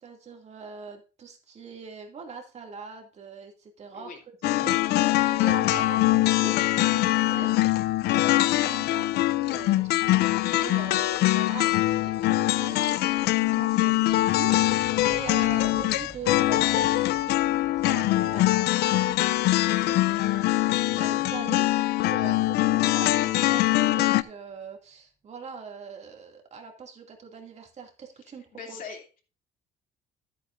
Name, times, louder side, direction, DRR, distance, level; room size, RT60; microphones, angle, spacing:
voice 1, 0.0-4.1 4.6-7.8 8.1-19.3 19.5-28.4 28.7-28.8, right 6 dB, 40° right, 2 dB, 2.4 m, -42 dB
sound 1, 4.4-24.2, left 16 dB, 75° left, 0.5 m, -23 dB
sound 2, 13.1-24.1, right 1 dB, 5° left, 3.6 m, -53 dB
voice 2, 28.5-29.2, left 5 dB, 55° left, 3 dB, 2.8 m, -41 dB
13.5 x 8.5 x 2.6 m, 0.35 s
cardioid pair, 110°, 17 cm